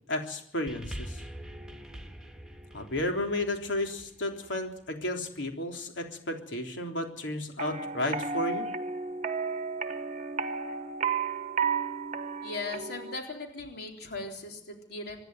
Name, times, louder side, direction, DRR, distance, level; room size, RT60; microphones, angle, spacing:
voice 1, 0.1-1.2 2.7-8.7, left 1 dB, 90° left, 3 dB, 3.6 m, -33 dB
sound 1, 0.7-5.2 6.0-6.1, right 1 dB, 5° right, 1.9 m, -44 dB
sound 2, 7.6-13.2, right 5 dB, 40° right, 1.1 m, -33 dB
voice 2, 12.4-15.2, left 3 dB, 60° left, 2 dB, 3.9 m, -38 dB
25.5 x 11.0 x 9.4 m, 0.71 s
head